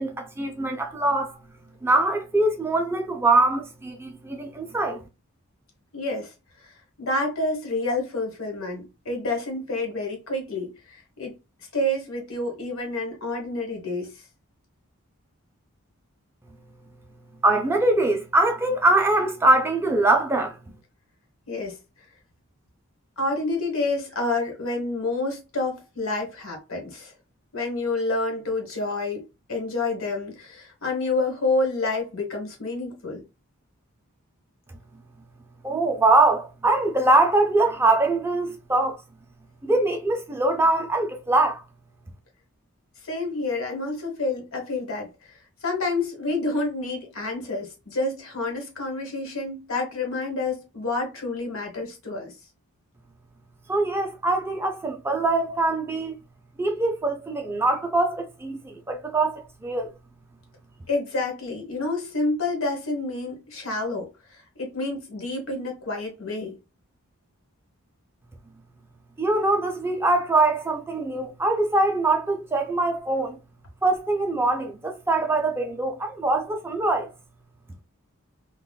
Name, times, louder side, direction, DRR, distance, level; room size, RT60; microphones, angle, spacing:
voice 1, 0.0-1.4 1.8-5.0 17.4-20.6 35.6-39.0 39.6-41.6 53.7-56.1 56.6-59.9 69.2-73.4 73.8-77.1, right 2 dB, 10° right, 0.3 m, -23 dB
voice 2, 5.9-6.3 6.6-6.7 7.0-11.3 11.7-14.1 21.5-21.7 23.2-27.1 27.5-29.2 29.5-33.2 43.0-45.4 45.6-52.3 60.9-66.5, left 2 dB, 65° left, 1.1 m, -28 dB
3.6 x 2.2 x 2.2 m
head